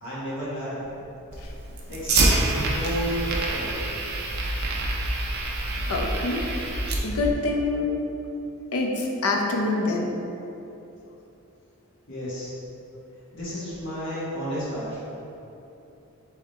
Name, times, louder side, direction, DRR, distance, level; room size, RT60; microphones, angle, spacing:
voice 1, 0.0-0.9 1.9-3.2 3.5-3.9 12.1-12.5 13.3-15.0, equal, 55° left, -9 dB, 1.4 m, -32 dB
Fire, 1.3-7.3, right 2 dB, 45° right, 0.5 m, -26 dB
voice 2, 5.9-6.5 7.0-8.0 8.7-10.1, left 2 dB, 85° left, 1 dB, 0.6 m, -25 dB
3.5 x 3.4 x 4.2 m, 2.9 s
head